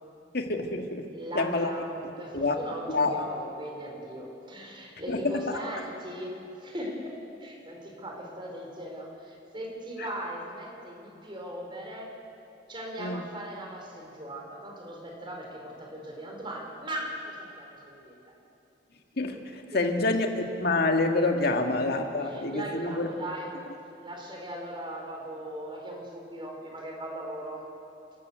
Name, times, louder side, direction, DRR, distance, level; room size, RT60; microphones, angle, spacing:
voice 1, 0.3-1.1 1.4-1.7 2.0-2.6 2.9-3.2 5.1-5.6 10.0-10.1 13.0-13.2 19.2-23.1, left 2 dB, 60° left, 4 dB, 1.9 m, -27 dB
voice 2, 1.1-12.1 12.7-18.3 19.7-20.2 21.5-21.6 22.2-23.5 24.0-27.7, right 1 dB, 30° right, 0 dB, 4.5 m, -39 dB
29.0 x 13.0 x 8.2 m, 2.8 s
head